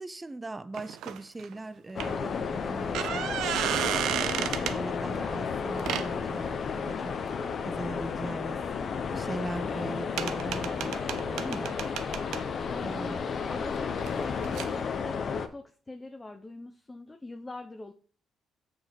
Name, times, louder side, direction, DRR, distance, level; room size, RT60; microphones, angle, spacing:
voice 1, 0.0-7.2 7.6-8.6 9.1-11.8 12.8-13.2, right 2 dB, 20° right, 0.6 m, -40 dB
sound 1, 0.7-1.5 2.0-2.1 2.7-4.8 5.8-6.1 9.3-9.4 9.7-9.8 10.2-12.4 14.0-14.1 14.4-14.7, right 10 dB, 85° right, 0.6 m, -32 dB
sound 2, 2.0-15.5, left 6 dB, 55° left, 0.8 m, -32 dB
voice 2, 12.7-17.9, left 2 dB, 20° left, 0.7 m, -43 dB
6.6 x 4.8 x 5.2 m
cardioid pair, 90°, 0 cm